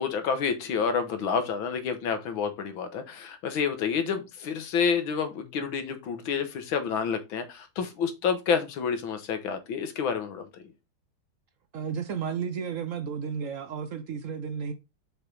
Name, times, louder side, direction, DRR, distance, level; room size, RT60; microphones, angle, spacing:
voice 1, 0.0-10.6, left 6 dB, 75° left, 1.9 m, -29 dB
voice 2, 11.7-14.7, right 6 dB, 75° right, 0.7 m, -33 dB
6.6 x 4.2 x 5.2 m
omnidirectional pair, 2.2 m